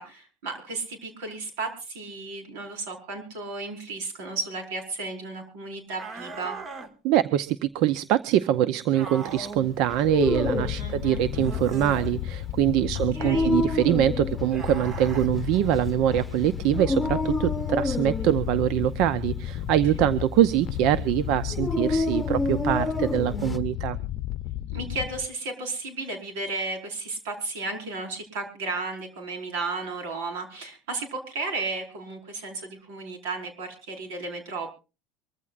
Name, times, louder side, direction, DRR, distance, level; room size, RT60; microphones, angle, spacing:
voice 1, 0.0-6.6 10.8-11.2 13.1-13.5 24.7-34.7, right 3 dB, 85° right, 3 dB, 5.1 m, -34 dB
sound 1, 6.0-6.9 8.9-9.7 11.3-12.1 14.5-15.3, right 4 dB, 40° right, 1.9 m, -38 dB
voice 2, 7.0-24.0, right 12 dB, 65° right, 15 dB, 0.6 m, -24 dB
Dog, 9.8-23.6, left 2 dB, 10° left, 1.4 m, -30 dB
sound 2, 10.2-25.3, left 14 dB, 60° left, 0.6 m, -33 dB
24.5 x 14.5 x 2.5 m, 0.31 s
supercardioid pair, 115°, 0 cm